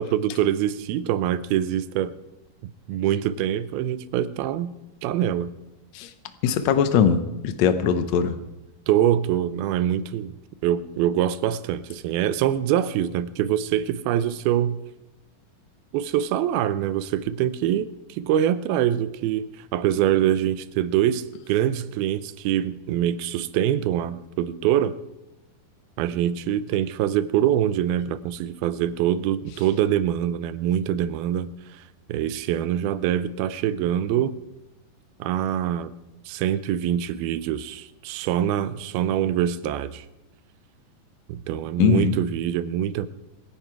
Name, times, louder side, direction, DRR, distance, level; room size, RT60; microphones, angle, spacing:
voice 1, 0.0-2.1 2.9-4.7 5.0-5.5 8.9-10.4 10.6-14.8 15.9-25.0 26.0-31.8 32.1-34.4 35.2-35.9 36.3-40.1 41.3-43.1, right 11 dB, 85° right, 15 dB, 2.5 m, -24 dB
voice 2, 6.4-8.3 41.8-42.2, left 7 dB, 80° left, 10 dB, 1.6 m, -21 dB
26.0 x 10.5 x 4.7 m, 0.98 s
omnidirectional pair, 4.3 m